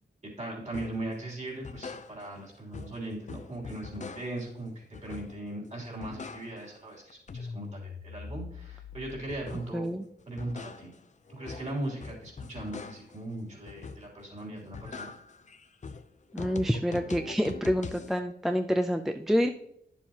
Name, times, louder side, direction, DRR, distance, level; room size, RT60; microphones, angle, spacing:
voice 1, 0.2-9.9 10.3-10.9 11.3-15.1, right 1 dB, 40° right, -2 dB, 3.1 m, -39 dB
sound 1, 0.7-1.0 1.5-2.5 2.7-4.5 4.9-5.6 5.8-6.8 7.1-9.8 10.2-13.2 13.7-14.3 14.6-18.2, left 4 dB, 45° left, 0.6 m, -42 dB
voice 2, 9.7-10.0 16.3-19.5, equal, ahead, 6 dB, 0.4 m, -27 dB
11.0 x 7.2 x 2.9 m, 0.70 s
wide cardioid pair, 110°, 18 cm